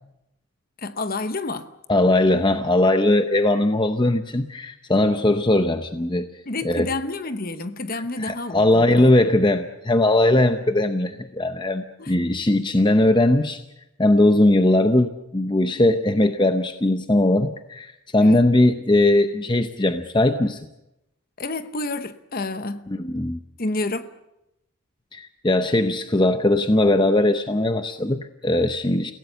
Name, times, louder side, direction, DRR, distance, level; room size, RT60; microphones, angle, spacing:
voice 1, 0.8-1.7 6.5-9.1 12.0-12.1 18.2-18.4 21.4-22.9 23.6-24.1, left 2 dB, 40° left, 1.0 m, -29 dB
voice 2, 1.9-6.3 6.6-6.9 7.9-13.6 14.0-20.7 22.9-23.4 25.1-29.1, left 1 dB, 20° left, 0.7 m, -19 dB
29.5 x 17.0 x 6.9 m
head